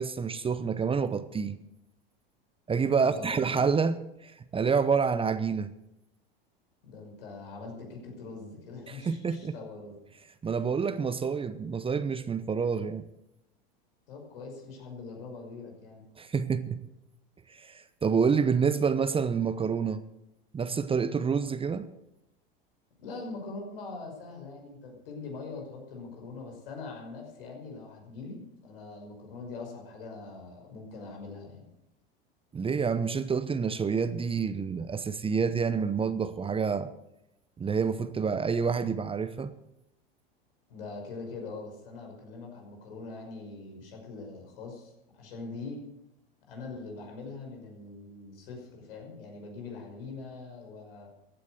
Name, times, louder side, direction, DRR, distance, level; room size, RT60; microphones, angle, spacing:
voice 1, 0.0-1.6 2.7-4.0 4.2-5.7 8.9-9.5 10.4-13.1 16.2-16.8 17.5-20.0 20.5-21.9 32.5-36.9 37.6-39.5, right 6 dB, 20° right, 0.9 m, -28 dB
voice 2, 3.0-3.7 6.8-10.0 14.1-16.0 23.0-31.7 40.7-45.8 46.5-51.1, left 3 dB, 75° left, 5.8 m, -42 dB
15.0 x 9.6 x 8.0 m
hypercardioid pair, 90°, 29 cm